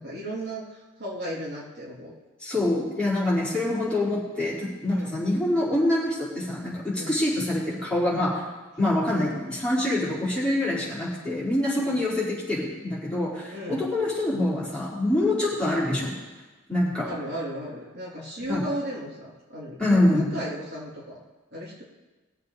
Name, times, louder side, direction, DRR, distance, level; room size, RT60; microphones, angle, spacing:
voice 1, 0.0-2.1 4.9-5.2 7.0-7.1 11.8-12.0 13.5-13.9 17.0-21.2 21.5-21.8, equal, 55° right, -6 dB, 3.5 m, -35 dB
voice 2, 2.4-8.4 8.8-16.1 16.7-17.1 18.5-18.6 19.8-20.3, left 1 dB, 5° left, -8 dB, 4.2 m, -25 dB
21.0 x 7.7 x 4.2 m, 1.2 s
head